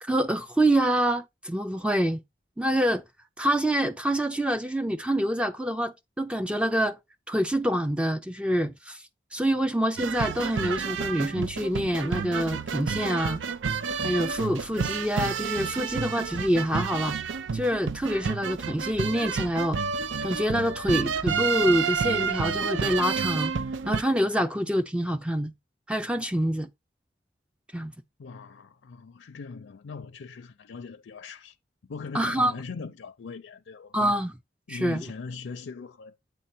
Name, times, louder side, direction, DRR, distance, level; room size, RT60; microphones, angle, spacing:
voice 1, 0.0-2.2 2.6-3.0 3.4-7.0 7.3-9.0 9.3-13.4 14.0-17.2 17.5-19.8 20.2-23.5 23.9-25.5 25.9-26.7 27.7-27.9 32.1-32.5 33.9-34.3 34.7-35.0, equal, 5° right, 0.4 m, -26 dB
sound 1, 10.0-24.0, right 6 dB, 90° right, 0.6 m, -30 dB
voice 2, 28.2-31.6 31.8-34.2 34.7-36.2, left 4 dB, 85° left, 0.5 m, -40 dB
7.6 x 3.9 x 4.2 m
head